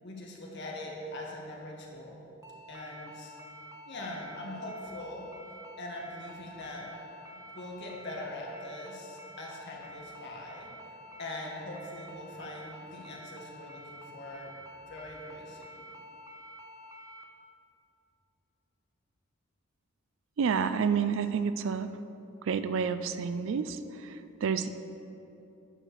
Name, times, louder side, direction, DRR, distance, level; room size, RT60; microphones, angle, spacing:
voice 1, 0.0-2.2 2.7-3.3 3.9-5.2 5.8-6.9 7.5-10.7 11.2-14.5 14.9-15.8, left 1 dB, 50° left, -2 dB, 1.6 m, -42 dB
sound 1, 2.4-17.2, equal, 15° right, 0.6 m, -49 dB
voice 2, 20.4-21.9 22.4-24.7, right 6 dB, 60° right, 11 dB, 0.4 m, -29 dB
9.8 x 4.8 x 6.6 m, 2.8 s
head